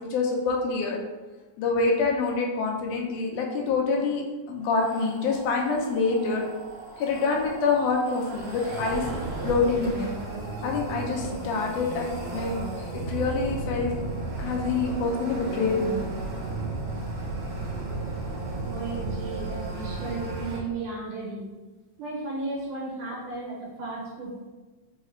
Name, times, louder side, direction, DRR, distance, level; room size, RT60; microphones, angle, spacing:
voice 1, 0.1-1.0 1.6-4.2 4.5-6.5 7.0-9.0 9.4-10.1 10.6-12.5 12.9-13.9 14.4-16.0, left 4 dB, 85° left, 0 dB, 2.1 m, -26 dB
sound 1, 4.8-20.6, right 2 dB, 75° right, 2.4 m, -34 dB
voice 2, 18.6-21.5 22.0-24.5, right 3 dB, 90° right, -5 dB, 2.4 m, -35 dB
5.4 x 2.4 x 3.1 m, 1.2 s
omnidirectional pair, 3.5 m